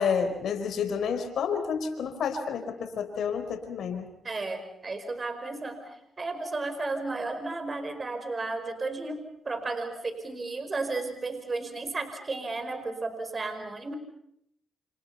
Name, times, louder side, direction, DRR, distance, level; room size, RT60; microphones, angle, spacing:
voice 1, 0.0-4.0, left 6 dB, 75° left, 7 dB, 4.6 m, -29 dB
voice 2, 4.2-5.8 6.2-13.9, right 3 dB, 40° right, 8 dB, 5.2 m, -33 dB
29.5 x 28.0 x 5.7 m, 0.75 s
cardioid pair, 60°, 0 cm